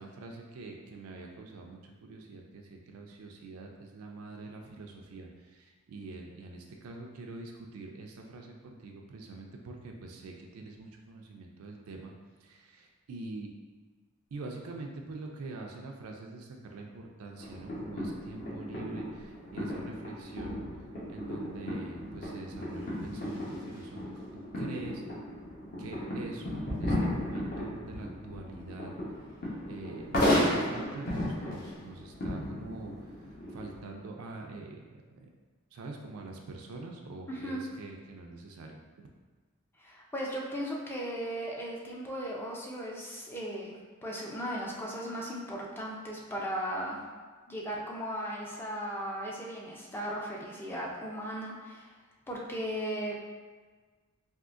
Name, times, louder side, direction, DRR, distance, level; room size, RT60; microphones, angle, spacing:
voice 1, 0.0-12.1 12.4-13.5 14.3-20.6 21.1-24.3 24.5-25.0 25.8-28.9 29.7-33.1 33.5-35.3 35.7-39.1, right 3 dB, 85° right, 1 dB, 0.4 m, -44 dB
sound 1, 17.4-33.8, left 1 dB, 45° left, 0.8 m, -34 dB
voice 2, 37.3-37.6 39.8-47.0 47.5-51.9 52.3-53.2, equal, 10° left, -3 dB, 0.4 m, -37 dB
3.6 x 2.4 x 2.4 m, 1.4 s
head